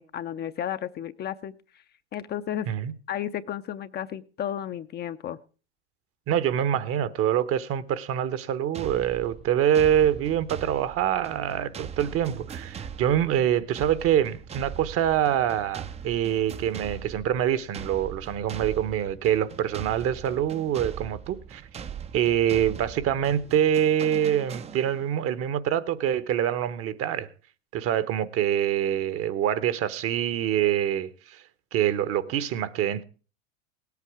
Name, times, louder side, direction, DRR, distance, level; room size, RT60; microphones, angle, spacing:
voice 1, 0.0-1.8 2.1-2.7 3.1-5.4, left 10 dB, 30° left, 0.6 m, -33 dB
voice 2, 6.3-21.6 22.1-27.3 27.7-31.4 31.7-33.0, right 10 dB, 45° right, 1.0 m, -25 dB
sound 1, 8.7-25.2, right 7 dB, 20° right, 0.5 m, -41 dB
18.0 x 8.4 x 4.8 m
hypercardioid pair, 90°, 32 cm